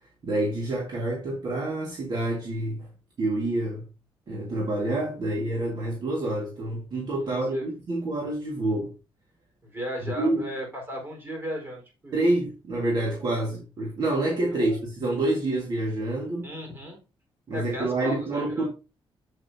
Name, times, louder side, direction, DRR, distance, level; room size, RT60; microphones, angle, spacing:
voice 1, 0.2-2.9 3.2-3.9 4.3-8.9 10.0-10.4 12.1-16.5 17.5-18.7, right 2 dB, 50° right, 1.9 m, -27 dB
voice 2, 7.2-7.7 9.6-12.2 14.5-14.8 16.4-17.0 17.5-18.7, equal, 25° right, 4.4 m, -36 dB
7.9 x 7.8 x 2.8 m
wide cardioid pair, 150°, 10 cm